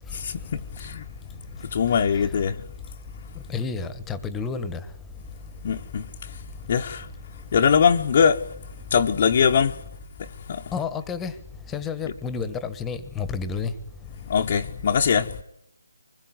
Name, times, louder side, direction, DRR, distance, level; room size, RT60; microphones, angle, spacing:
voice 1, 0.1-0.4 0.7-1.0 1.6-2.6 5.6-6.3 6.7-7.1 7.5-8.5 8.9-9.8 10.2-10.7 14.3-15.4, left 7 dB, 40° left, 1.1 m, -22 dB
voice 2, 3.5-4.8 10.7-11.3 11.7-13.7, left 5 dB, 10° left, 1.5 m, -30 dB
24.5 x 21.0 x 9.5 m
figure-of-eight pair, 155°, 0 cm